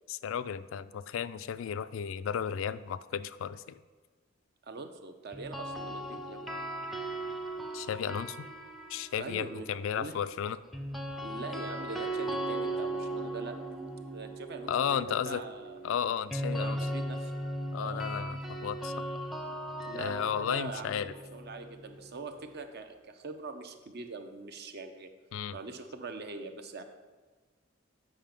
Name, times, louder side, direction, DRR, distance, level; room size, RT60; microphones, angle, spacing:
voice 1, 0.1-3.8 7.7-8.5 8.9-10.6 14.7-15.4 15.8-16.8 17.7-18.9 19.9-21.1 25.3-25.6, left 8 dB, 75° left, 14 dB, 0.3 m, -34 dB
voice 2, 4.6-6.5 9.2-9.7 9.9-10.2 11.2-13.6 14.1-15.8 16.5-17.3 17.8-18.1 19.8-25.1 25.5-26.8, right 3 dB, 55° right, 7 dB, 0.7 m, -43 dB
sound 1, 5.3-9.5 10.7-22.6, right 1 dB, ahead, 0.6 m, -38 dB
7.5 x 5.6 x 5.1 m, 1.3 s
head